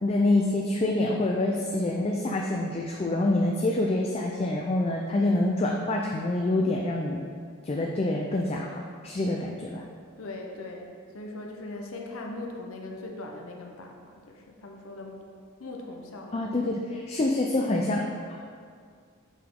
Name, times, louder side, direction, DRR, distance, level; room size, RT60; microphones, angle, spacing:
voice 1, 0.0-7.2 7.6-9.8 16.3-18.4, left 2 dB, 30° left, 0 dB, 0.4 m, -26 dB
voice 2, 10.2-10.9 11.1-15.2 15.6-16.4, left 2 dB, 75° left, 1 dB, 0.7 m, -40 dB
6.9 x 4.9 x 3.7 m, 2.1 s
head